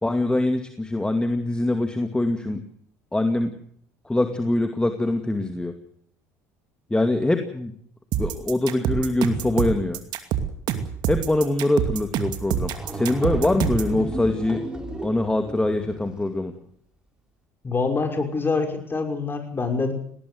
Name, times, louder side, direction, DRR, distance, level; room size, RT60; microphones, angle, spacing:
voice 1, 0.0-2.6 3.1-3.5 4.1-5.7 6.9-7.7 8.2-10.0 11.1-14.6 15.0-16.5, left 2 dB, 10° left, 6 dB, 2.4 m, -23 dB
sound 1, 8.1-13.9, right 9 dB, 65° right, 2.6 m, -26 dB
sound 2, 12.3-12.4 12.6-16.4, right 1 dB, 10° right, 5.7 m, -34 dB
voice 2, 17.6-19.9, left 4 dB, 25° left, 5 dB, 5.9 m, -25 dB
19.5 x 18.5 x 7.9 m, 0.64 s
hypercardioid pair, 70°, 8 cm